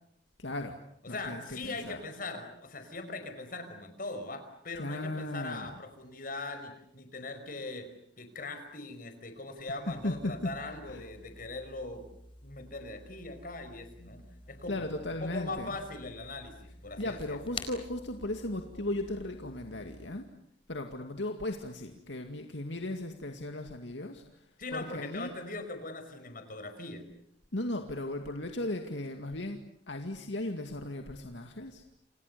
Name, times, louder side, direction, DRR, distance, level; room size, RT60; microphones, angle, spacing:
voice 1, 0.4-0.8 1.1-2.0 4.8-5.7 9.9-10.5 10.9-11.0 14.7-15.8 17.0-20.3 20.7-25.3 27.5-29.6 29.9-31.8, left 1 dB, 70° left, 5 dB, 2.3 m, -36 dB
voice 2, 1.0-7.9 8.2-12.0 12.4-14.2 14.5-17.4 24.6-27.1, left 2 dB, 45° left, 8 dB, 5.4 m, -41 dB
sound 1, 9.9-20.1, left 3 dB, 30° left, 4.6 m, -50 dB
30.0 x 28.0 x 6.9 m, 0.75 s
head